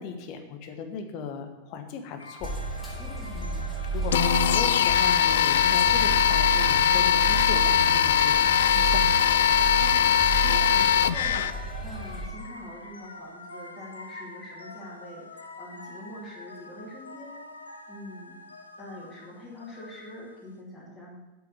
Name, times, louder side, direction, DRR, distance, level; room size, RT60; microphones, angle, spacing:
voice 1, 0.0-2.6 3.3-8.5 8.7-9.2, left 5 dB, 45° left, 7 dB, 1.1 m, -37 dB
sound 1, 2.2-20.5, left 2 dB, 80° left, 0.7 m, -45 dB
sound 2, 2.4-12.3, right 3 dB, 5° right, 3.1 m, -33 dB
voice 2, 3.0-3.4 9.8-10.1 10.4-18.4 18.8-21.2, left 1 dB, 15° left, -10 dB, 2.8 m, -44 dB
sound 3, 4.1-11.5, left 9 dB, 60° left, 0.3 m, -21 dB
7.6 x 6.2 x 7.0 m, 1.1 s
figure-of-eight pair, 90°, 0 cm